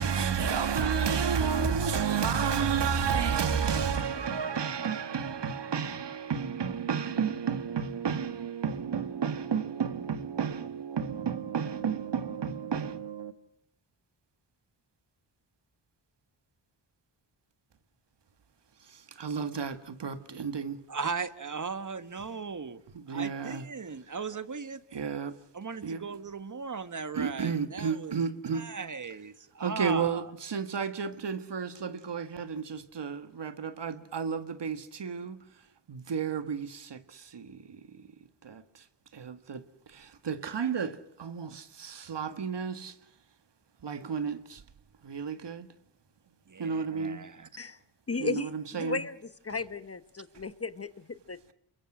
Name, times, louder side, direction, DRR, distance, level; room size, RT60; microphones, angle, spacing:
voice 1, 0.0-13.4 18.8-20.8 22.9-23.6 24.9-25.4 25.8-26.0 27.1-28.7 29.6-35.4 35.9-38.1 38.4-38.8 39.1-39.6 39.9-43.0 43.8-44.6 45.0-45.7 46.6-47.2 48.2-49.0, right 6 dB, 60° right, 1.7 m, -32 dB
voice 2, 20.9-22.8 23.1-24.8 25.5-28.2 28.5-30.3 46.5-47.5, right 5 dB, 40° right, 1.5 m, -37 dB
voice 3, 48.1-49.2 49.4-51.5, left 3 dB, 30° left, 1.1 m, -35 dB
28.5 x 23.5 x 6.3 m
cardioid pair, 70°, 46 cm